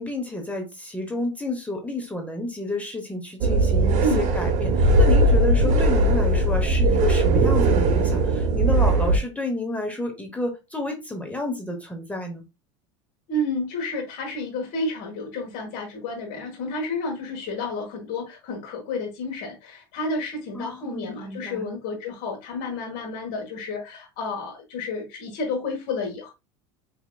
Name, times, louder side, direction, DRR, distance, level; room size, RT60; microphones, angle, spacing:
voice 1, 0.0-12.4 20.5-21.7, left 2 dB, 10° left, 0.8 m, -30 dB
sound 1, 3.4-9.2, right 2 dB, 50° right, 0.8 m, -19 dB
voice 2, 13.3-26.3, left 2 dB, 65° left, 1.2 m, -30 dB
4.4 x 2.8 x 2.2 m
supercardioid pair, 115°, 16 cm